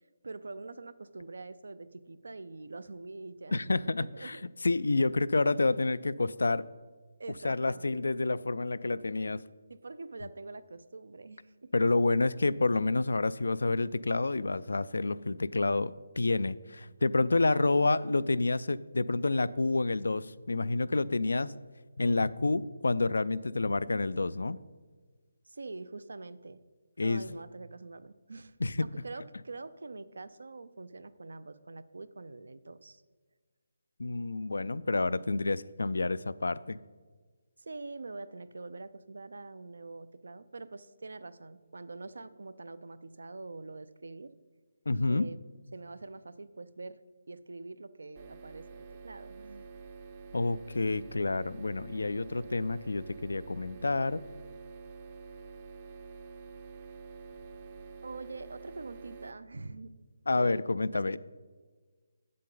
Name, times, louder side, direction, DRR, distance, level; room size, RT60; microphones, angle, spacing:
voice 1, 0.2-4.5 7.2-8.0 9.7-11.7 17.4-17.9 25.5-26.6 27.0-28.6 28.8-33.0 37.6-44.3 45.1-45.4 45.7-47.0 47.3-49.7 58.0-59.9 60.4-61.2, right 3 dB, 80° right, 15 dB, 0.5 m, -45 dB
voice 2, 3.5-4.4 4.6-6.6 7.4-9.4 11.7-21.5 22.0-24.6 27.0-27.2 28.6-28.8 34.0-36.8 44.9-45.2 50.3-54.2 60.3-61.2, left 3 dB, 90° left, 18 dB, 0.3 m, -29 dB
sound 1, 48.2-59.3, right 5 dB, 25° right, 0.5 m, -48 dB
8.4 x 7.5 x 3.9 m, 1.4 s
hypercardioid pair, 170°, 0 cm